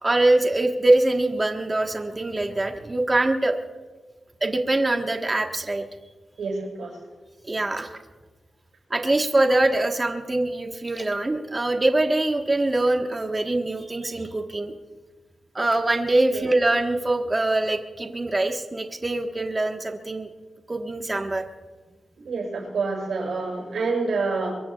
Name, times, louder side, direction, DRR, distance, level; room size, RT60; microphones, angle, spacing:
voice 1, 0.0-3.6 4.4-5.8 7.5-7.9 8.9-14.7 15.5-20.3 20.7-21.4, right 2 dB, 25° right, 3 dB, 1.4 m, -23 dB
voice 2, 6.4-7.0 16.3-16.5 22.2-24.6, right 4 dB, 85° right, -2 dB, 7.0 m, -27 dB
23.5 x 22.5 x 2.4 m, 1.3 s
wide cardioid pair, 90°, 0 cm